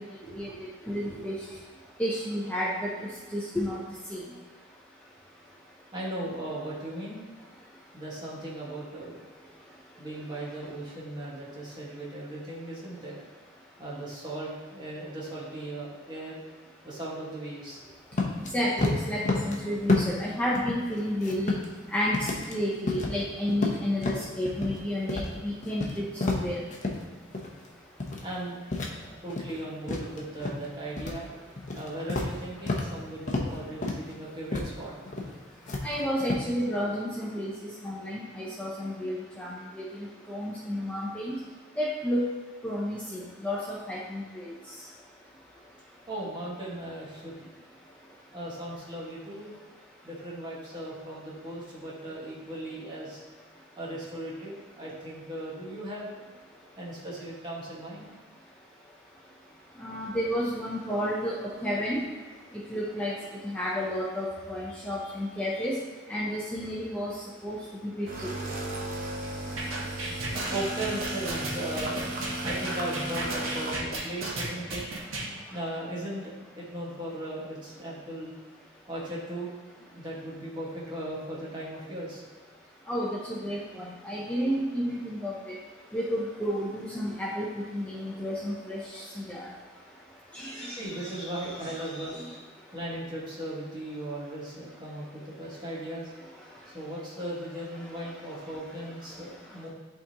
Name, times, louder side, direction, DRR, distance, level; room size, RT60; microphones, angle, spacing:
voice 1, 0.2-0.6 0.8-1.2 5.9-7.2 7.9-9.2 10.0-13.2 13.8-16.4 16.8-17.9 28.2-28.6 29.2-31.3 31.7-34.9 46.1-47.5 48.3-49.5 50.0-53.2 53.8-56.3 56.8-58.1 59.9-60.0 64.7-65.6 69.9-70.0 70.5-72.0 72.4-74.8 75.5-78.3 78.9-79.5 79.8-82.2 90.7-92.2 92.7-96.1 96.7-99.7, right 1 dB, 25° right, -6 dB, 1.6 m, -37 dB
voice 2, 0.9-1.4 2.0-2.9 3.3-3.8 4.1-4.2 18.5-21.5 21.9-26.6 35.8-41.4 41.8-42.3 42.6-44.5 59.8-61.3 61.6-62.0 62.7-63.1 63.4-65.7 66.1-67.1 67.4-67.6 68.0-68.1 82.9-85.4 85.9-89.0 89.3-89.5 90.3-90.8 91.0-91.8, equal, 5° left, -6 dB, 0.7 m, -31 dB
sound 1, 18.1-18.5 18.8-19.6 19.9-20.3 20.5-21.8 22.1-22.5 22.9-23.2 23.5-24.8 25.1-25.3 25.6-27.0 27.3-27.6 28.0-28.3 28.7-29.6 29.9-30.6 31.0-31.2 31.6-32.9 33.3-33.5 33.8-34.1 34.5-34.7 35.0-35.3 35.7-36.5, left 2 dB, 40° left, 0.8 m, -30 dB
sound 2, 68.1-73.8, right 1 dB, 45° right, 0.8 m, -35 dB
sound 3, 69.6-75.3, right 2 dB, 90° right, 1.4 m, -34 dB
10.5 x 3.7 x 2.9 m, 1.4 s
head